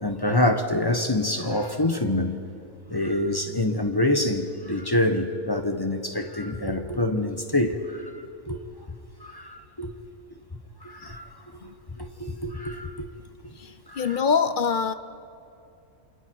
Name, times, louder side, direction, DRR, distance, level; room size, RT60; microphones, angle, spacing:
voice 1, 0.0-2.4 2.9-8.1 8.5-8.6 9.2-9.9 10.8-11.3 11.6-11.7 12.0-13.1 13.4-13.5 13.9-14.2, left 1 dB, 20° left, 1.1 m, -26 dB
voice 2, 14.0-14.9, left 6 dB, 45° left, 0.7 m, -23 dB
28.0 x 27.0 x 4.7 m
omnidirectional pair, 1.4 m